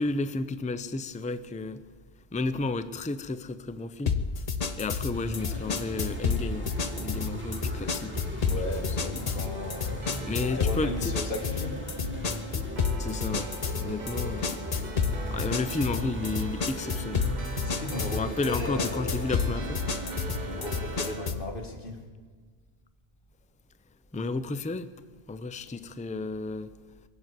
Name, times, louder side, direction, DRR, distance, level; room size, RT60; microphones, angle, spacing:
voice 1, 0.0-1.8 2.3-4.1 4.8-8.2 9.2-9.3 10.2-11.1 13.0-13.5 13.8-14.6 15.3-17.3 18.1-19.8 24.1-24.9 25.3-26.7, left 3 dB, 10° left, 0.4 m, -32 dB
sound 1, 4.1-21.5, left 5 dB, 40° left, 0.8 m, -31 dB
sound 2, 5.1-21.1, right 1 dB, 10° right, 2.5 m, -38 dB
voice 2, 8.5-11.8 17.6-19.3 20.4-22.0, left 2 dB, 60° left, 2.0 m, -36 dB
sound 3, 9.5-21.3, right 5 dB, 50° right, 0.9 m, -45 dB
23.0 x 7.7 x 8.2 m
omnidirectional pair, 1.0 m